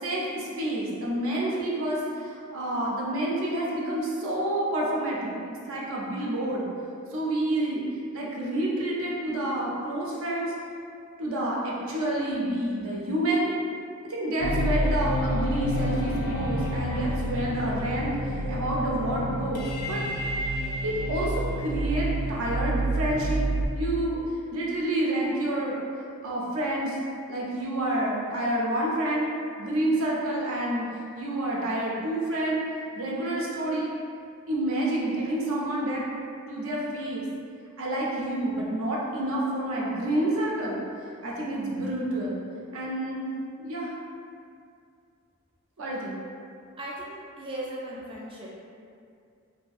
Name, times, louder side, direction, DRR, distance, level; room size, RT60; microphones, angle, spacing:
voice 1, 0.0-6.7 7.1-7.8 8.1-10.5 11.2-13.5 14.1-20.0 20.8-23.4 23.7-24.2 24.5-25.8 26.2-27.0 27.3-29.3 29.6-30.9 31.2-32.6 32.9-33.9 34.5-36.1 36.5-37.2 37.8-40.8 41.2-42.4 42.7-43.3 43.6-43.9 45.8-46.2, right 1 dB, 70° right, -4 dB, 0.5 m, -28 dB
sound 1, 14.4-23.7, equal, 85° left, 0.4 m, -28 dB
voice 2, 46.8-48.5, right 1 dB, 25° right, -5 dB, 0.4 m, -37 dB
2.7 x 2.6 x 2.4 m, 2.4 s
head